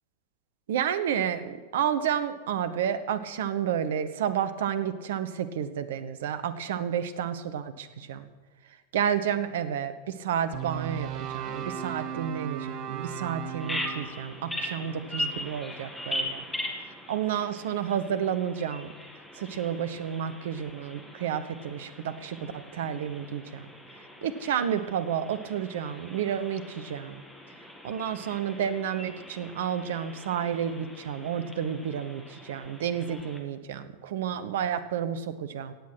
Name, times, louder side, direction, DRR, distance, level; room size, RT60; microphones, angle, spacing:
voice 1, 0.7-8.3 8.9-16.4 17.1-18.9 19.3-23.7 24.2-27.2 27.8-35.7, right 8 dB, 60° right, 12 dB, 0.9 m, -31 dB
sound 1, 10.5-16.8, right 10 dB, 40° right, 1.2 m, -38 dB
Bird vocalization bird call bird song, 13.6-33.4, left 1 dB, 5° left, 1.9 m, -40 dB
16.5 x 8.4 x 6.2 m, 1.3 s
figure-of-eight pair, 90°, 0 cm